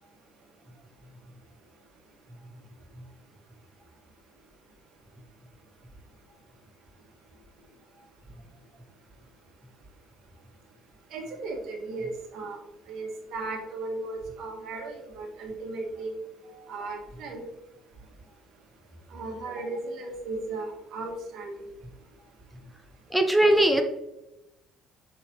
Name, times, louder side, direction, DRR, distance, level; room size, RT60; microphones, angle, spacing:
voice 1, 11.1-12.6 12.9-16.1 16.4-17.4 19.1-21.6, right 3 dB, 60° right, 1 dB, 1.5 m, -36 dB
voice 2, 23.1-23.8, right 1 dB, ahead, 4 dB, 0.8 m, -20 dB
6.7 x 5.9 x 2.8 m, 0.91 s
figure-of-eight pair, 50°, 0 cm